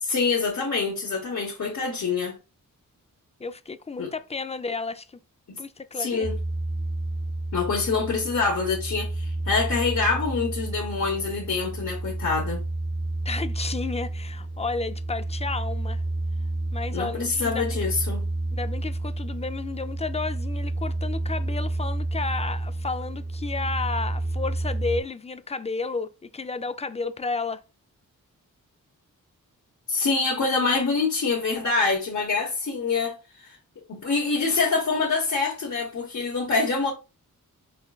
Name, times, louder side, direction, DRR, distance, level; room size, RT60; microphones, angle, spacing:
voice 1, 0.0-2.3 4.0-4.1 6.0-6.4 7.5-12.6 16.9-18.2 29.9-33.6 33.9-36.9, left 4 dB, 55° left, 1.1 m, -25 dB
voice 2, 3.4-5.1 5.6-6.3 13.3-16.0 16.7-17.8 18.5-27.6, left 4 dB, 20° left, 0.3 m, -32 dB
sound 1, 6.2-25.0, right 2 dB, 65° right, 2.2 m, -30 dB
5.5 x 2.2 x 2.3 m
cardioid pair, 50°, 35 cm